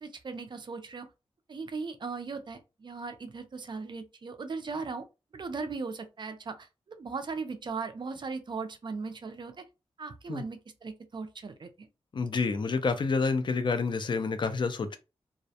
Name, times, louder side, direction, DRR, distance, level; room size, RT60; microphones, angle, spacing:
voice 1, 0.0-1.1 1.5-5.0 5.3-9.6 10.0-11.9, right 4 dB, 45° right, 0.4 m, -38 dB
voice 2, 12.1-15.0, left 4 dB, 50° left, 0.4 m, -28 dB
2.3 x 2.0 x 2.7 m
wide cardioid pair, 105°, 10 cm